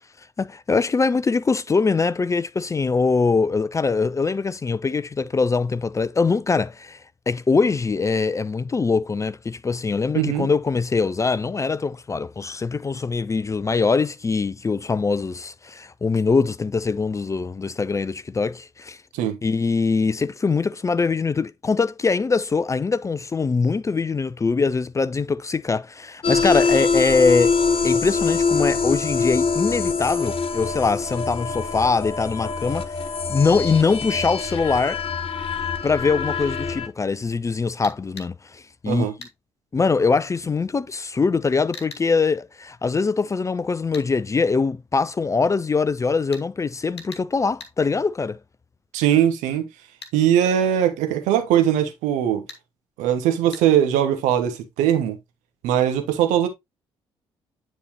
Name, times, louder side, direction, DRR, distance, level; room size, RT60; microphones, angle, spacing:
voice 1, 0.4-19.0 19.4-27.5 27.8-32.9 33.3-35.0 35.8-39.0 39.7-48.4, left 4 dB, 20° left, 0.5 m, -22 dB
voice 2, 10.1-10.5 19.1-19.4 38.9-39.1 48.9-49.7 50.1-52.4 53.0-55.2 55.6-56.5, right 10 dB, 65° right, 1.2 m, -20 dB
sound 1, 26.2-36.9, left 4 dB, 45° left, 1.0 m, -24 dB
sound 2, 37.8-38.3 39.2-39.4 41.7-42.1 43.9-44.1 46.3-46.5 47.0-47.3 47.6-47.8 50.0-50.2 52.5-52.6 53.5-53.6, left 4 dB, 80° left, 1.1 m, -40 dB
9.7 x 4.2 x 2.9 m
figure-of-eight pair, 45°, 14 cm